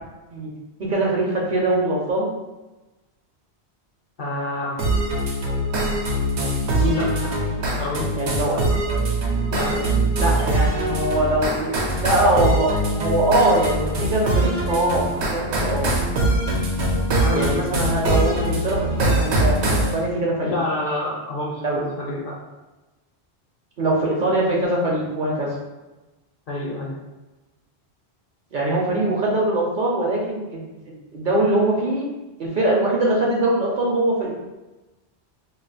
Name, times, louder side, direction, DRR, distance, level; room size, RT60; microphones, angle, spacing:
voice 1, 0.8-2.3 8.2-8.6 10.2-11.7 12.0-15.9 17.3-20.5 21.6-21.8 23.8-25.5 28.5-30.6 31.1-32.0 32.4-34.3, right 1 dB, 55° right, -3 dB, 0.7 m, -22 dB
voice 2, 4.2-4.8 6.8-8.1 9.5-10.3 17.2-17.5 20.4-22.4 26.5-27.0, left 2 dB, 55° left, -2 dB, 0.7 m, -28 dB
sound 1, 4.8-19.9, right 1 dB, 90° right, 0.9 m, -22 dB
2.3 x 2.3 x 3.9 m, 1.1 s
omnidirectional pair, 1.1 m